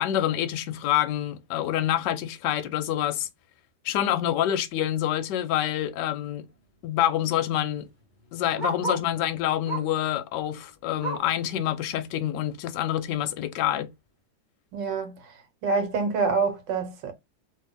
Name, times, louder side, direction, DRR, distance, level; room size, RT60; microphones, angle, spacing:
voice 1, 0.0-3.3 3.8-6.5 6.8-7.9 8.3-13.9, left 11 dB, 70° left, 1.2 m, -27 dB
Bark, 5.4-5.7 6.0-6.1 6.3-9.2 9.6-10.1 10.4-11.4 11.9-12.0 12.4-12.5 13.2-13.3, right 3 dB, 35° right, 0.8 m, -36 dB
voice 2, 14.7-15.1 15.6-17.1, right 4 dB, 70° right, 1.5 m, -26 dB
2.9 x 2.8 x 3.7 m
omnidirectional pair, 2.2 m